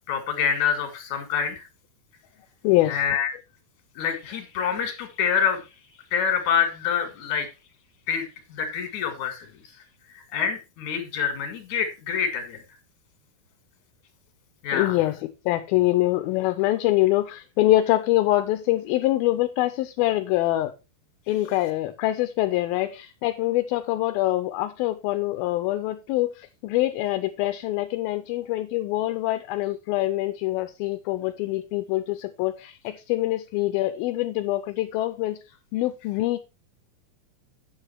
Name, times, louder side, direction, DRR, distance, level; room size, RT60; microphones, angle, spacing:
voice 1, 0.1-1.6 2.8-3.4 4.0-5.6 6.1-7.5 8.1-9.5 10.1-12.6 14.6-15.0, left 7 dB, 55° left, 3.0 m, -26 dB
voice 2, 2.6-3.0 14.7-15.1 15.5-20.7 21.3-35.4 35.7-36.4, left 16 dB, 80° left, 2.3 m, -24 dB
9.2 x 6.8 x 4.4 m
omnidirectional pair, 4.7 m